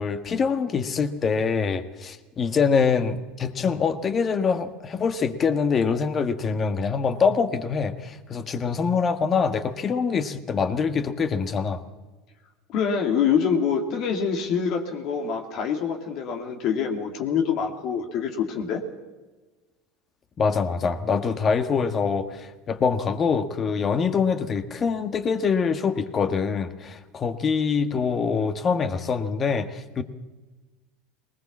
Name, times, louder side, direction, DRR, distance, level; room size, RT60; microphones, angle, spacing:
voice 1, 0.0-11.8 20.4-30.0, left 5 dB, 35° left, 10 dB, 1.6 m, -24 dB
voice 2, 12.7-18.8, left 7 dB, 55° left, 4 dB, 2.3 m, -25 dB
20.0 x 20.0 x 7.3 m, 1.2 s
hypercardioid pair, 80°, 0 cm